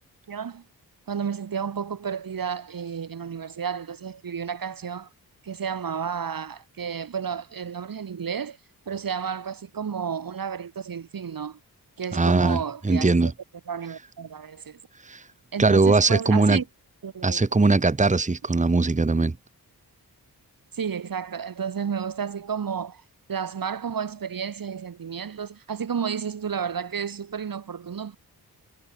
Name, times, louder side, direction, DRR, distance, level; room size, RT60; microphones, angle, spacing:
voice 1, 0.3-0.6 1.1-5.1 5.4-8.6 8.9-11.6 12.0-13.3 13.7-14.8 15.5-16.6 17.0-17.7 20.7-23.0 23.3-28.2, right 7 dB, 60° right, 1.9 m, -32 dB
voice 2, 12.1-13.3 15.0-15.2 15.6-16.6 17.2-19.3, right 3 dB, 20° right, 1.4 m, -20 dB
wide cardioid pair, 150°, 38 cm